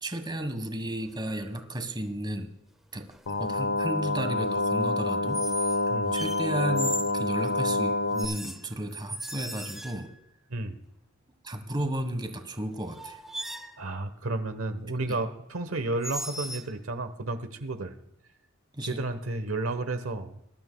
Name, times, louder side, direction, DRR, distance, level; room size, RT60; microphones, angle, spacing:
voice 1, 0.0-2.5 2.9-5.4 6.1-10.1 11.4-13.2 15.1-15.2 18.7-19.0, right 1 dB, 20° right, 8 dB, 1.4 m, -33 dB
sound 1, 1.0-1.3 3.1-3.4 5.3-5.8 6.1-7.2 8.1-10.2 12.4-12.5 12.9-13.8 16.0-16.7, equal, ahead, 0.7 m, -37 dB
sound 2, 3.3-8.3, left 2 dB, 90° left, 1.0 m, -27 dB
voice 2, 13.8-17.9 18.8-20.3, right 2 dB, 80° right, 9 dB, 1.1 m, -32 dB
22.0 x 12.5 x 2.3 m, 0.81 s
head